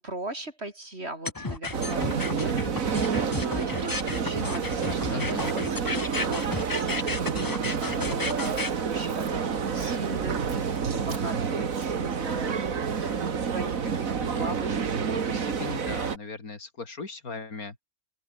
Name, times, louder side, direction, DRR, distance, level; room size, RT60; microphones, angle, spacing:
voice 1, 0.0-3.1 3.4-5.9 6.2-15.3, right 2 dB, 40° right, 5.0 m, -40 dB
sound 1, 1.2-8.7, left 3 dB, 20° left, 0.6 m, -33 dB
sound 2, 1.7-16.2, right 6 dB, 60° right, 2.0 m, -29 dB
voice 2, 5.1-5.5 14.2-14.5 15.1-17.8, left 4 dB, 70° left, 3.6 m, -38 dB
Walk footsteps, 6.1-12.1, right 3 dB, 80° right, 4.4 m, -50 dB
open air
omnidirectional pair, 1.6 m